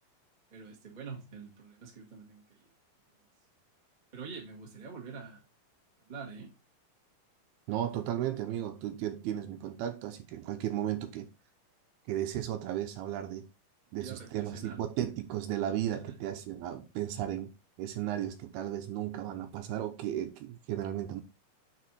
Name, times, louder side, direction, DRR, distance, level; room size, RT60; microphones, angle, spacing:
voice 1, 0.5-2.7 4.1-5.4 6.0-6.5 14.0-14.8 15.9-16.3, right 5 dB, 25° right, 0.9 m, -46 dB
voice 2, 7.7-11.3 12.1-13.5 13.9-17.5 17.8-21.2, right 11 dB, 80° right, 2.6 m, -35 dB
6.6 x 4.7 x 4.2 m
omnidirectional pair, 4.6 m